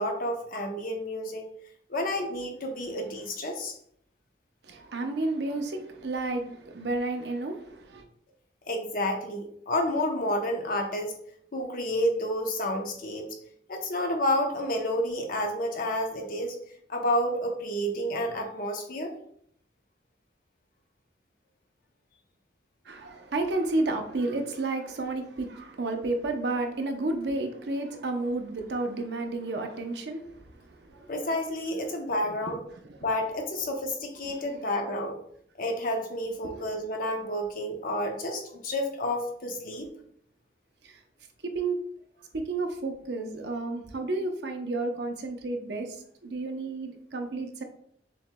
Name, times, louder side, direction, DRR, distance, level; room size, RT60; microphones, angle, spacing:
voice 1, 0.0-1.5 1.9-3.8 8.7-11.1 11.5-13.4 13.7-16.6 16.9-19.1 31.1-32.6 33.0-35.2 35.6-39.9, left 1 dB, 50° left, 2 dB, 0.8 m, -30 dB
voice 2, 4.6-8.0 22.8-31.1 32.3-32.4 32.8-33.1 34.2-34.3 36.5-36.6 40.8-41.0 41.4-41.8 42.3-47.6, right 2 dB, 65° right, 4 dB, 0.7 m, -31 dB
6.9 x 3.1 x 2.2 m, 0.67 s
head